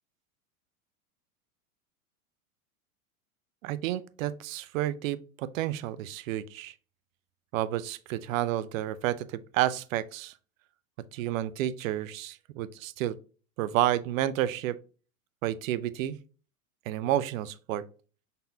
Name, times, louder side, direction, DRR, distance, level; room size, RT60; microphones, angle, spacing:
voice 1, 3.6-6.7 7.5-10.3 11.1-13.2 13.6-14.8 15.4-16.2 16.9-17.8, right 13 dB, 65° right, 0.5 m, -30 dB
5.3 x 4.1 x 2.3 m
hypercardioid pair, 105°, 44 cm